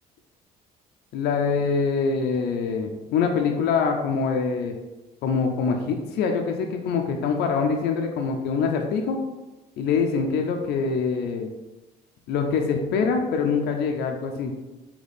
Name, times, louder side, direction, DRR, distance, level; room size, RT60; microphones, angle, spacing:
voice 1, 1.1-4.8 5.2-9.2 9.8-11.5 12.3-14.5, left 5 dB, 75° left, 3 dB, 0.5 m, -24 dB
3.3 x 2.9 x 4.1 m, 1.1 s
cardioid pair, 110°, 17 cm